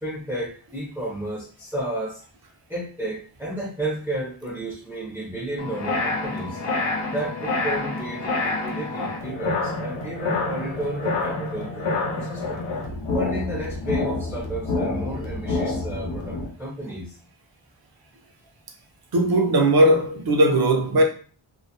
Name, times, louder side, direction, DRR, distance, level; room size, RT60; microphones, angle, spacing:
voice 1, 0.0-2.2 2.7-6.6 7.1-12.7 13.1-17.2, right 1 dB, 5° right, 0.5 m, -32 dB
sound 1, 5.6-16.5, left 3 dB, 85° left, 0.8 m, -28 dB
voice 2, 19.1-21.0, right 1 dB, 50° right, 0.6 m, -18 dB
2.3 x 2.1 x 2.7 m
wide cardioid pair, 125°, 47 cm